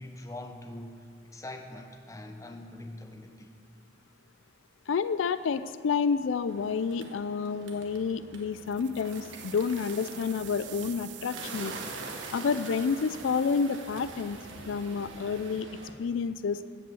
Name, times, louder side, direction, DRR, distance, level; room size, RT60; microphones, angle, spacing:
voice 1, 0.0-3.5, left 1 dB, 15° left, 5 dB, 0.8 m, -43 dB
voice 2, 4.9-11.7 12.3-14.4 14.7-15.7 16.0-16.6, left 5 dB, 85° left, 13 dB, 0.4 m, -29 dB
Bird, 6.5-15.9, right 2 dB, 90° right, 1.3 m, -45 dB
sound 1, 8.5-15.6, right 15 dB, 65° right, 0.5 m, -48 dB
14.0 x 5.4 x 7.8 m, 2.1 s
head